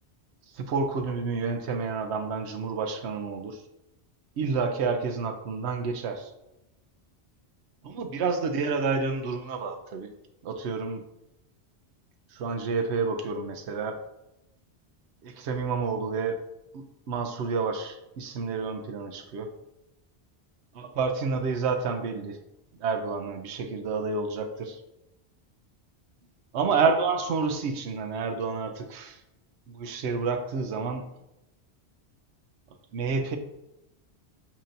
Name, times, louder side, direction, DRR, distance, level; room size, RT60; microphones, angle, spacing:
voice 1, 0.5-3.6 4.4-6.3 7.8-10.1 10.4-11.0 12.3-14.0 15.2-16.4 16.7-19.5 20.7-22.4 22.7-24.8 26.5-29.2 29.7-31.0 32.9-33.4, right 4 dB, 85° right, 6 dB, 0.9 m, -29 dB
7.3 x 2.8 x 2.5 m, 0.91 s
omnidirectional pair, 1.1 m